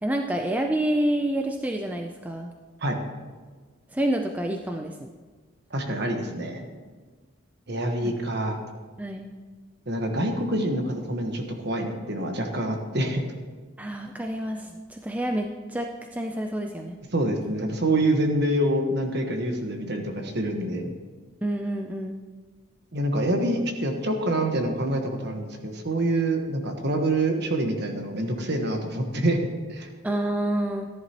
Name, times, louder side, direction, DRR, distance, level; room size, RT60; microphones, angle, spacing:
voice 1, 0.0-2.5 3.9-5.1 8.0-8.1 9.0-9.3 13.8-17.0 21.4-22.2 30.0-30.9, right 1 dB, 5° right, 3 dB, 0.4 m, -28 dB
voice 2, 5.7-6.6 7.7-8.6 9.9-13.2 17.1-20.9 22.9-29.9, right 1 dB, 50° right, 4 dB, 1.3 m, -26 dB
14.0 x 10.5 x 3.0 m, 1.4 s
head